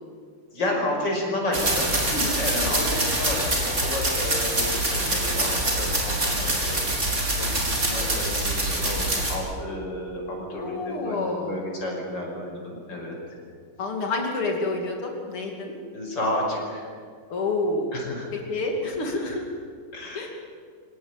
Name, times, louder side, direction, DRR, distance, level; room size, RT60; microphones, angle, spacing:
voice 1, 0.5-2.0 2.2-13.4 15.9-16.9 17.9-18.3 19.1-19.4 19.9-20.3, left 1 dB, 55° left, 0 dB, 6.4 m, -31 dB
sound 1, 1.5-9.4, right 1 dB, 30° right, 4.5 m, -25 dB
voice 2, 2.1-2.9 6.2-6.5 10.5-11.6 13.8-15.8 17.3-17.9 18.5-19.4 20.2-20.3, left 2 dB, 75° left, 1 dB, 3.6 m, -29 dB
25.5 x 17.5 x 9.1 m, 2.1 s
omnidirectional pair, 2.4 m